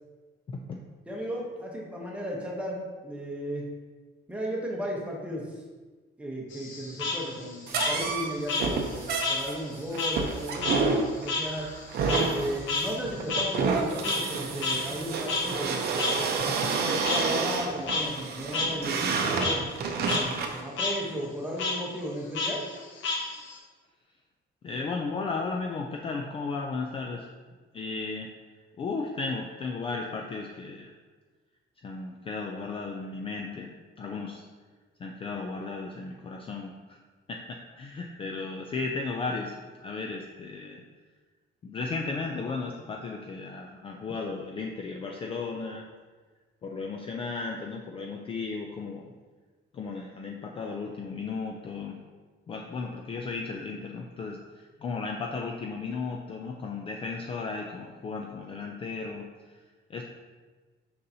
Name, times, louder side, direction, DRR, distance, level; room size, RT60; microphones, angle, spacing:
voice 1, 0.5-0.8 16.6-16.7 24.6-27.3 27.7-28.3 28.8-30.9 31.8-33.7 34.0-34.4 35.0-37.0 37.3-40.8 41.6-45.9 46.6-49.1 49.7-52.0 52.5-59.6 59.9-60.0, left 4 dB, 30° left, 1 dB, 0.4 m, -35 dB
voice 2, 1.1-3.6 4.3-5.4 6.2-11.7 12.3-16.1 16.8-19.7 20.1-22.7, equal, 5° right, -2 dB, 0.9 m, -35 dB
Frog, 6.5-9.4 9.7-14.4 14.6-14.7 15.3-15.4 16.0-16.1 17.0-17.2 17.7-18.0 18.5-18.7 19.0-19.5 19.9-20.2 20.5-20.9 21.6-21.7 22.3-23.6, left 4 dB, 80° left, 1.1 m, -30 dB
sound 1, 7.7-20.6, right 4 dB, 55° right, 0.6 m, -29 dB
6.6 x 5.4 x 2.7 m, 1.3 s
cardioid pair, 180°, 19 cm